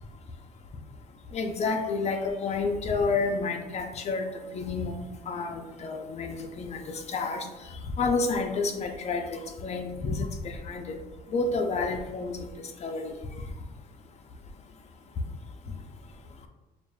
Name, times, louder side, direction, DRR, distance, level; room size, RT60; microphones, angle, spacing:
voice 1, 1.3-4.3 4.5-5.0 5.3-7.5 8.0-10.9 11.3-12.4 12.8-13.1, left 4 dB, 40° left, 5 dB, 0.6 m, -29 dB
6.9 x 2.4 x 2.3 m, 1.1 s
cardioid pair, 110°, 17 cm